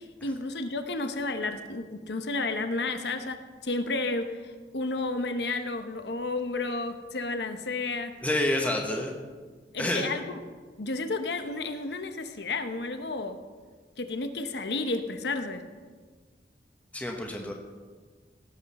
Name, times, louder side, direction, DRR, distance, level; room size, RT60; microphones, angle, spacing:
voice 1, 0.0-8.1 8.6-8.7 9.7-10.4 10.8-13.4 14.0-15.6, left 3 dB, 75° left, 8 dB, 0.9 m, -32 dB
voice 2, 8.2-9.1 9.8-10.1 16.9-17.5, left 1 dB, 10° left, 1 dB, 1.0 m, -28 dB
17.5 x 8.0 x 4.2 m, 1.5 s
head